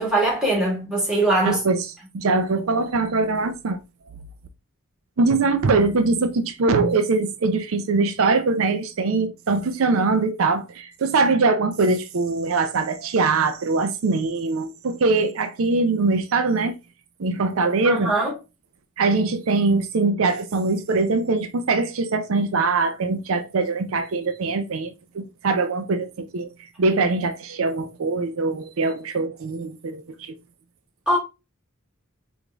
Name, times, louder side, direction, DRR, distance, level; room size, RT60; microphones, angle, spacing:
voice 1, 0.0-1.6 17.8-18.3 31.1-31.2, right 2 dB, 5° right, 1.8 m, -21 dB
voice 2, 1.4-1.9 2.1-3.8 5.2-16.7 17.2-18.1 19.0-26.5 26.8-30.4, right 3 dB, 75° right, 0.5 m, -22 dB
4.9 x 2.6 x 3.4 m
head